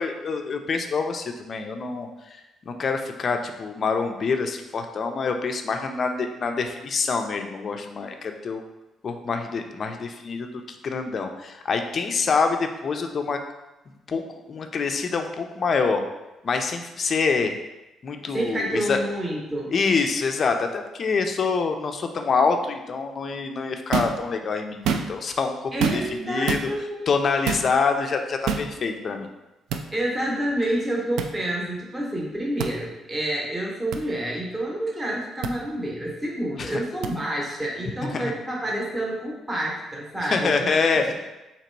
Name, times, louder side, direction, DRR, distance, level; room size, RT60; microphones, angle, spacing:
voice 1, 0.0-2.4 2.7-8.6 9.0-13.4 14.1-16.0 16.4-17.6 18.0-19.0 19.7-26.7 27.1-29.3 36.6-36.8 38.1-38.3 40.2-41.1, left 4 dB, 30° left, 5 dB, 0.4 m, -26 dB
voice 2, 18.3-19.7 25.7-27.1 29.9-40.7, right 1 dB, 15° right, -3 dB, 0.8 m, -28 dB
sound 1, 23.9-24.2 24.7-25.3 25.8-26.2 26.5-26.7 27.5-27.7 28.5-28.7 29.7-29.8 31.2-31.3 32.6-32.7 33.9-34.0 35.4-35.5 37.0-37.1, right 6 dB, 85° right, 0.3 m, -26 dB
3.9 x 2.9 x 4.4 m, 1.0 s
cardioid pair, 180°, 0 cm